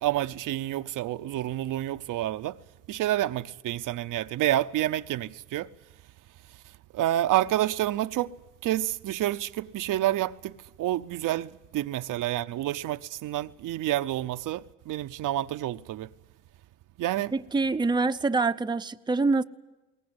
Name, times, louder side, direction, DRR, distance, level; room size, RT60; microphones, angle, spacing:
voice 1, 0.0-2.6 2.9-5.7 6.9-8.3 8.6-16.1 17.0-17.3, right 14 dB, 60° right, 0.8 m, -29 dB
voice 2, 17.3-19.4, right 3 dB, 10° right, 0.7 m, -25 dB
22.0 x 19.0 x 9.7 m
supercardioid pair, 70°, 36 cm